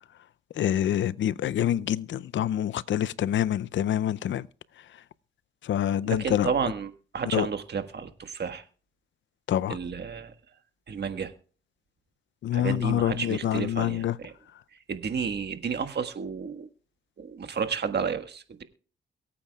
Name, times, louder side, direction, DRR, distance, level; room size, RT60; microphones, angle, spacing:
voice 1, 0.6-4.5 5.6-6.5 7.3-7.5 9.5-9.8 12.4-14.2, left 11 dB, 65° left, 0.5 m, -26 dB
voice 2, 6.0-8.6 9.7-10.3 10.9-11.3 12.5-14.3 14.9-16.7 17.2-18.6, right 6 dB, 55° right, 1.5 m, -31 dB
23.0 x 8.7 x 2.3 m
supercardioid pair, 50°, 21 cm